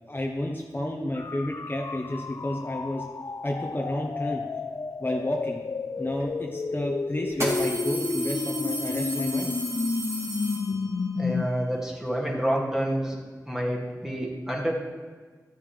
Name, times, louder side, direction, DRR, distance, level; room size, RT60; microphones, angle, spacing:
voice 1, 0.1-3.0 3.4-4.4 5.0-5.6 6.0-9.5, left 1 dB, 30° left, 0 dB, 1.0 m, -30 dB
sound 1, 1.2-11.5, left 4 dB, 55° left, 0.4 m, -31 dB
sound 2, 6.2-6.3 7.3-11.1, right 1 dB, 40° right, 2.6 m, -33 dB
voice 2, 11.2-13.2 13.5-14.7, equal, 5° right, -3 dB, 2.2 m, -28 dB
12.5 x 7.6 x 3.3 m, 1.5 s
cardioid pair, 50°, 7 cm